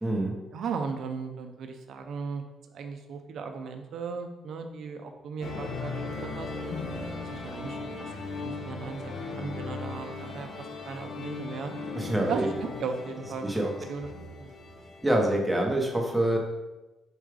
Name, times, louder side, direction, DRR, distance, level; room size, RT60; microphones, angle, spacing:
voice 1, 0.0-0.4 12.0-12.5 13.4-13.7 15.0-16.4, right 1 dB, 5° right, 0 dB, 0.9 m, -26 dB
voice 2, 0.5-2.4 2.7-6.5 7.2-11.7 12.3-14.1 14.4-14.5, right 5 dB, 70° right, 5 dB, 0.5 m, -37 dB
sound 1, 5.4-15.3, left 3 dB, 60° left, 0.9 m, -38 dB
4.7 x 2.4 x 4.7 m, 1.1 s
cardioid pair, 90°, 0 cm